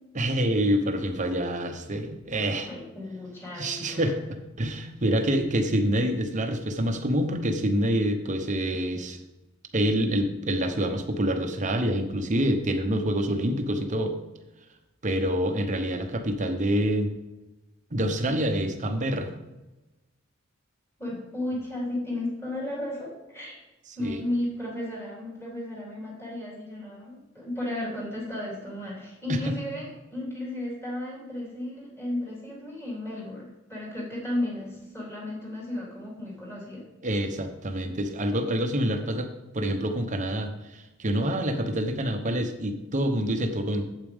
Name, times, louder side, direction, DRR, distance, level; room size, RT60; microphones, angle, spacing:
voice 1, 0.1-2.7 3.6-4.2 4.6-9.2 9.7-14.2 15.0-17.1 17.9-19.3 24.0-24.2 29.3-29.5 37.0-39.3 39.5-43.8, right 1 dB, 35° right, 5 dB, 0.9 m, -26 dB
voice 2, 2.7-4.1 21.0-23.6 23.9-36.8, left 1 dB, 10° left, -5 dB, 3.3 m, -34 dB
8.6 x 8.3 x 3.6 m, 1.0 s
head